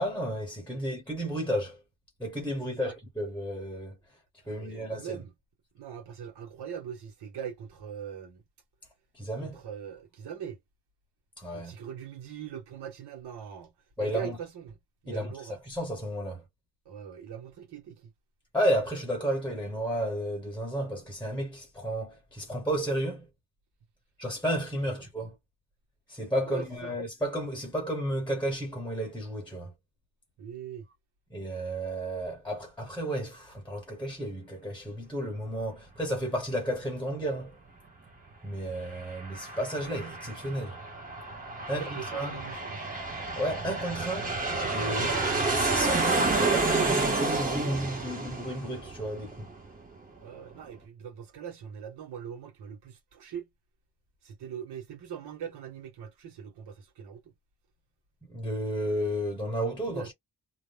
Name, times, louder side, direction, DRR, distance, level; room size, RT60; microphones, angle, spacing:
voice 1, 0.0-1.8 2.2-4.0 4.5-5.2 9.1-9.6 11.4-11.7 14.0-14.4 15.1-16.4 18.5-23.3 24.2-25.4 26.1-29.7 31.3-37.6 38.4-40.8 41.7-42.4 43.3-44.4 44.7-45.2 45.5-49.5 58.3-60.1, equal, 5° left, 1.0 m, -32 dB
voice 2, 2.6-3.0 4.4-5.3 5.7-8.4 9.4-10.6 11.5-14.8 15.0-15.6 16.8-18.1 25.0-25.1 26.4-26.9 30.4-30.9 41.7-42.9 50.2-53.5 54.2-57.3 59.9-60.1, right 8 dB, 85° right, 1.3 m, -41 dB
Aircraft, 38.7-49.9, right 3 dB, 20° right, 1.0 m, -30 dB
2.7 x 2.2 x 3.3 m
wide cardioid pair, 175°, 39 cm